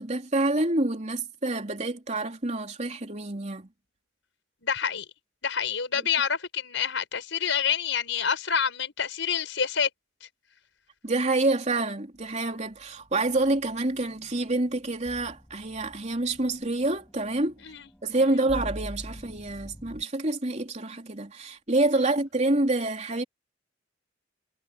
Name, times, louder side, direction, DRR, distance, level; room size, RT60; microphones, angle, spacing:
voice 1, 0.0-3.7 6.0-6.1 11.0-17.5 18.0-23.2, right 2 dB, 35° right, 3.3 m, -27 dB
voice 2, 4.6-5.1 5.4-9.9 10.2-10.3 17.6-17.9 18.3-18.4 22.0-22.1, left 7 dB, 75° left, 5.4 m, -28 dB
sound 1, 12.8-20.0, equal, 10° left, 7.9 m, -44 dB
head